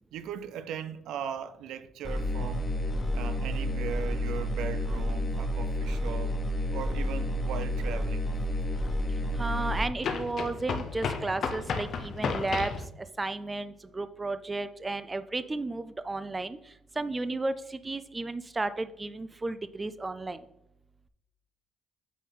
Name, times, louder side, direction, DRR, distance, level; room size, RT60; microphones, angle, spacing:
voice 1, 0.1-2.6 3.1-6.4 6.7-8.3, right 8 dB, 85° right, 0.4 m, -38 dB
sound 1, 2.0-9.8, left 1 dB, 30° left, 1.3 m, -30 dB
sound 2, 7.6-7.7 10.0-12.9, left 5 dB, 60° left, 0.7 m, -33 dB
voice 2, 9.4-12.7 13.2-16.6 17.0-20.4, right 2 dB, 20° right, 0.4 m, -33 dB
8.3 x 4.1 x 4.0 m
cardioid pair, 90°, 0 cm